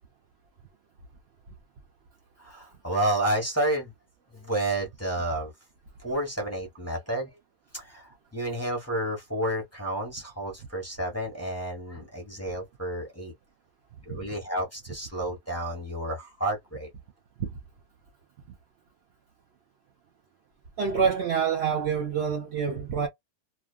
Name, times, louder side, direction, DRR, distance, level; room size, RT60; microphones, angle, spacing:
voice 1, 2.4-3.9 4.3-5.5 6.0-7.4 7.7-13.3 14.0-16.9, right 1 dB, 10° left, 1.0 m, -30 dB
voice 2, 20.8-23.1, right 6 dB, 65° right, 0.7 m, -26 dB
2.6 x 2.3 x 2.2 m
omnidirectional pair, 1.5 m